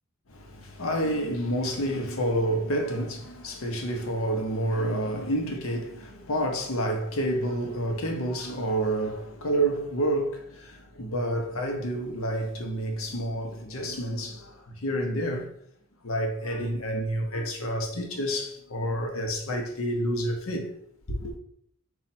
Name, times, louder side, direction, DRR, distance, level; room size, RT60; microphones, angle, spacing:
voice 1, 0.3-15.5 16.0-20.7 21.1-21.3, right 1 dB, 80° left, 0.8 m, -29 dB
4.2 x 2.4 x 4.2 m
head